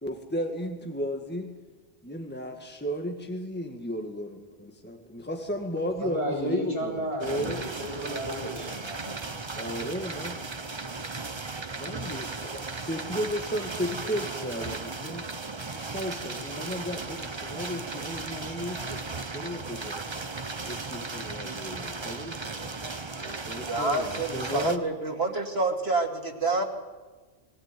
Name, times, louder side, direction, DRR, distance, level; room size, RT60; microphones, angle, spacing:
voice 1, 0.0-1.5 2.0-7.6 9.5-10.4 11.8-15.3 15.7-20.0 20.6-22.4 22.6-23.0 23.2-24.8, equal, 10° left, 4 dB, 1.8 m, -34 dB
voice 2, 6.0-9.1, equal, 65° left, 1 dB, 7.3 m, -33 dB
sound 1, 7.2-24.8, right 3 dB, 30° right, 0.9 m, -36 dB
voice 3, 23.7-26.6, right 2 dB, 70° right, 2 dB, 2.8 m, -28 dB
21.5 x 16.5 x 9.2 m, 1.3 s
omnidirectional pair, 1.1 m